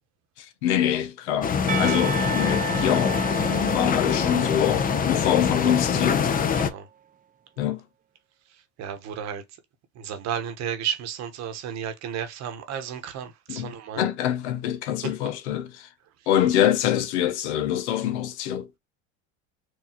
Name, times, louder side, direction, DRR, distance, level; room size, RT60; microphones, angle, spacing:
voice 1, 0.4-1.5 1.8-6.4 7.6-7.8 13.5-15.9 16.3-18.7, left 10 dB, 85° left, 0.9 m, -25 dB
sound 1, 1.4-6.7, left 6 dB, 25° left, 0.6 m, -24 dB
Percussion / Church bell, 1.7-6.7, right 7 dB, 25° right, 0.6 m, -34 dB
voice 2, 6.5-6.9 8.8-9.4 9.9-14.1, right 8 dB, 55° right, 1.2 m, -33 dB
4.7 x 2.7 x 2.8 m
supercardioid pair, 100°, 33 cm